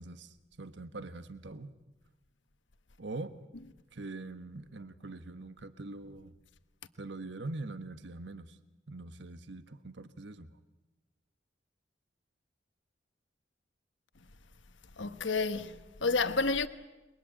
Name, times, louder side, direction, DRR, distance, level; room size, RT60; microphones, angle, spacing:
voice 1, 0.0-1.7 3.0-3.4 3.9-6.3 6.9-8.6 8.9-10.6, right 2 dB, 75° right, 1.2 m, -43 dB
voice 2, 15.0-16.7, left 4 dB, 90° left, 1.2 m, -30 dB
29.5 x 22.0 x 9.0 m
head